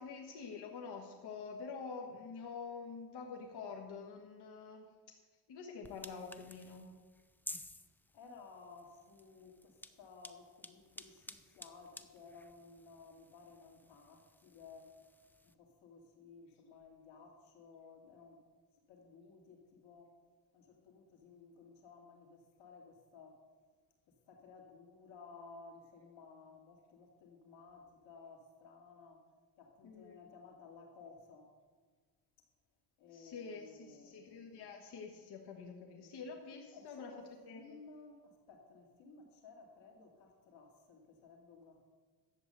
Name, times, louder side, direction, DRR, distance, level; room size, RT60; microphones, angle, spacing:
voice 1, 0.0-5.2 5.5-6.9 29.8-30.2 33.1-37.1 37.5-37.8, left 5 dB, 60° left, 1 dB, 1.5 m, -47 dB
sound 1, 5.8-15.5, left 1 dB, 5° left, 0.4 m, -54 dB
voice 2, 8.1-15.0 15.4-18.4 18.9-20.1 20.5-23.4 24.1-29.3 29.6-31.6 33.0-34.6 36.7-37.2 37.5-41.9, left 4 dB, 85° left, 1 dB, 2.5 m, -57 dB
11.0 x 8.2 x 6.8 m, 1.5 s
cardioid pair, 120°, 45 cm